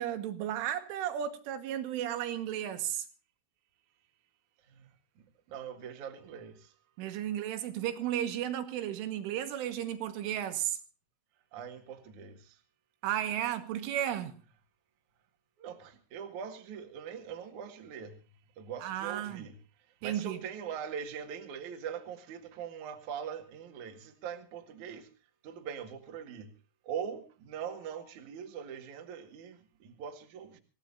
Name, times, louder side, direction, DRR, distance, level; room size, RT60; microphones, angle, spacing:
voice 1, 0.0-3.1 7.0-10.8 13.0-14.3 18.8-19.4 20.0-20.4, right 11 dB, 80° right, 3.7 m, -34 dB
voice 2, 5.5-6.7 11.5-12.6 15.6-18.2 18.6-19.6 20.0-25.1 25.4-26.5 26.8-30.6, right 7 dB, 55° right, 2.5 m, -42 dB
26.0 x 16.5 x 2.6 m
omnidirectional pair, 5.9 m